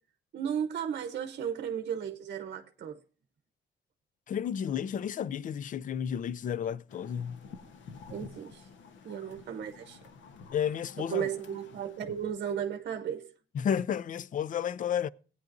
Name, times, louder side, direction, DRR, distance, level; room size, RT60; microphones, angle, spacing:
voice 1, 0.3-3.0 8.1-8.7 9.0-10.0 11.1-13.3, right 8 dB, 60° right, 0.8 m, -35 dB
voice 2, 4.3-7.4 10.5-11.3 13.5-15.1, left 8 dB, 45° left, 0.4 m, -32 dB
sound 1, 6.9-12.3, left 5 dB, 85° left, 1.1 m, -50 dB
17.0 x 9.4 x 2.6 m
cardioid pair, 120°, 19 cm